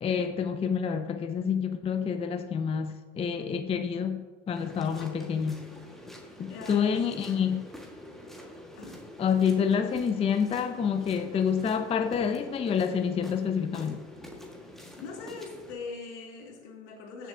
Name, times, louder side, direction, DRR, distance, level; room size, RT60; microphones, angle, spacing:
voice 1, 0.0-5.6 6.4-7.7 9.2-14.0, left 7 dB, 15° left, 8 dB, 0.5 m, -28 dB
Muddy Steps, 4.5-15.7, left 1 dB, ahead, 1.6 m, -46 dB
voice 2, 6.5-7.3 8.7-9.0 14.9-17.3, left 4 dB, 75° left, 0 dB, 2.3 m, -42 dB
16.0 x 6.8 x 2.8 m, 1.3 s
supercardioid pair, 105°, 35 cm